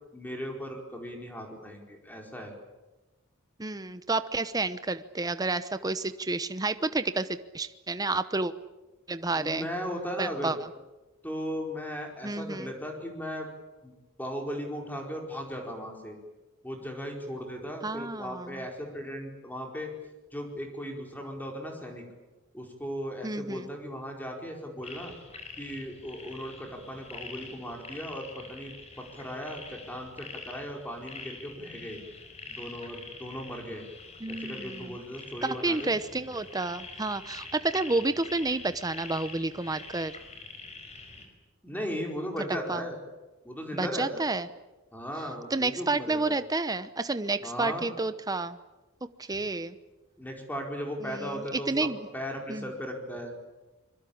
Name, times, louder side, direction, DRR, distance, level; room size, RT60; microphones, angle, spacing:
voice 1, 0.1-2.5 9.3-10.6 11.2-13.5 13.8-13.9 14.2-16.2 16.6-19.9 20.3-22.0 22.5-25.1 25.6-28.7 29.0-32.0 32.5-33.8 34.3-35.9 41.6-43.0 43.4-44.3 44.9-46.4 47.4-47.9 49.3-49.4 50.2-53.3, equal, 10° left, 1 dB, 4.7 m, -37 dB
voice 2, 3.6-8.5 9.1-9.7 10.2-10.6 12.2-12.7 17.8-18.6 23.2-23.7 34.2-35.0 35.4-40.1 42.7-42.8 43.7-44.5 45.5-48.6 49.2-49.8 51.0-52.0 52.5-52.7, right 3 dB, 20° right, 12 dB, 0.8 m, -30 dB
sound 1, 24.8-41.2, left 4 dB, 35° left, 5.1 m, -45 dB
25.0 x 23.0 x 8.7 m, 1.1 s
head